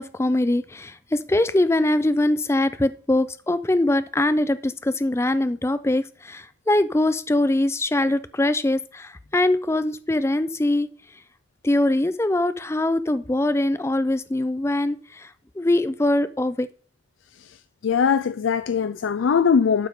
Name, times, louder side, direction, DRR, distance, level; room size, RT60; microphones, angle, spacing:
voice 1, 0.0-11.2 11.6-16.7, left 1 dB, 15° left, 0.4 m, -22 dB
voice 2, 17.8-19.9, left 6 dB, 80° left, 0.4 m, -20 dB
12.0 x 5.4 x 3.6 m
head